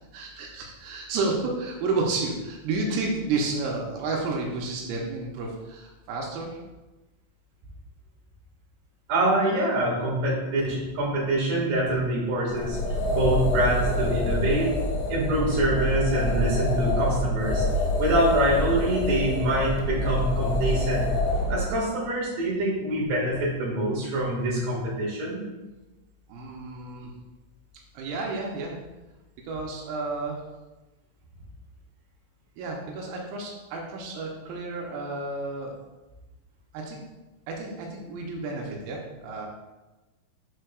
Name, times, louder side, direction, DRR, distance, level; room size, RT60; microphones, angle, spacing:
voice 1, 0.1-6.6 26.3-27.1 27.9-28.7 29.5-30.4 32.6-35.7 36.7-37.0 37.5-39.5, right 3 dB, 85° right, -1 dB, 3.4 m, -31 dB
voice 2, 9.1-12.8 13.1-14.7 15.1-17.6 18.0-21.1 21.5-25.5, right 1 dB, 65° right, -6 dB, 3.0 m, -25 dB
sound 1, 12.5-21.6, left 1 dB, 75° left, 3.3 m, -26 dB
7.5 x 6.2 x 2.2 m, 1.1 s
omnidirectional pair, 5.9 m